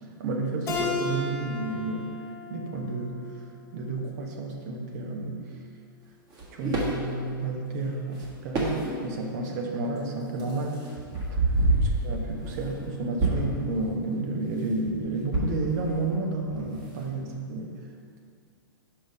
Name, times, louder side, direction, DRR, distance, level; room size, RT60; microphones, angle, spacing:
voice 1, 0.2-2.1 2.5-3.5 3.7-5.4 6.5-10.8 11.3-11.4 11.8-17.8, right 2 dB, 50° right, 2 dB, 1.1 m, -31 dB
Keyboard (musical), 0.7-3.9, left 3 dB, 25° left, 1.3 m, -34 dB
sound 1, 6.3-7.0 8.1-8.3 8.5-9.2 9.8-9.9 10.4-12.9 13.2-13.7 14.9-16.1 16.3-16.7, right 2 dB, 30° right, 1.6 m, -27 dB
5.6 x 5.2 x 5.5 m, 2.3 s
hypercardioid pair, 130°, 12 cm